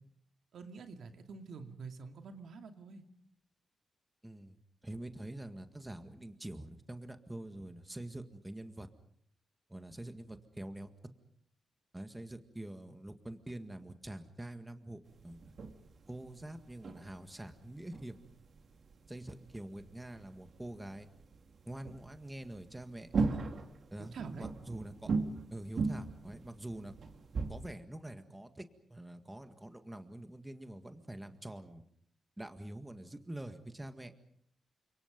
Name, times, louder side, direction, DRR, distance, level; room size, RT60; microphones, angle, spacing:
voice 1, 0.5-3.0 24.0-24.5, right 4 dB, 75° right, 6 dB, 2.5 m, -47 dB
voice 2, 4.2-4.6 4.8-8.9 9.7-10.9 11.9-15.5 16.1-18.2 19.1-21.1 21.7-23.1 23.9-25.1 25.5-26.9 27.5-31.8 32.4-34.1, right 1 dB, 10° right, 8 dB, 1.8 m, -45 dB
sound 1, 15.0-27.7, right 4 dB, 55° right, 2.5 m, -40 dB
30.0 x 26.5 x 5.3 m, 0.64 s
wide cardioid pair, 140°, 0 cm